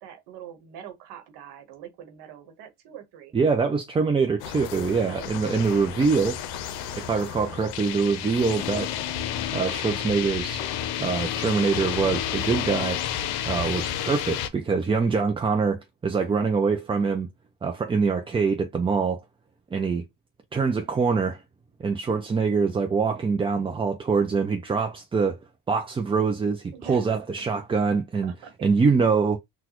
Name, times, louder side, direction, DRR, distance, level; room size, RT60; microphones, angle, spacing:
voice 1, 0.0-3.3 5.1-6.0 15.3-15.4 26.7-27.2 28.2-28.7, right 9 dB, 80° right, 1.1 m, -44 dB
voice 2, 3.3-6.4 6.9-8.9 9.5-10.6 11.0-13.0 13.5-17.3 17.6-19.2 19.7-20.0 20.5-21.4 21.8-25.4 25.7-28.3 28.6-29.4, right 5 dB, 15° right, 0.3 m, -24 dB
sound 1, 4.4-14.5, left 10 dB, 85° left, 0.6 m, -31 dB
4.0 x 2.2 x 2.9 m
cardioid pair, 105°, 39 cm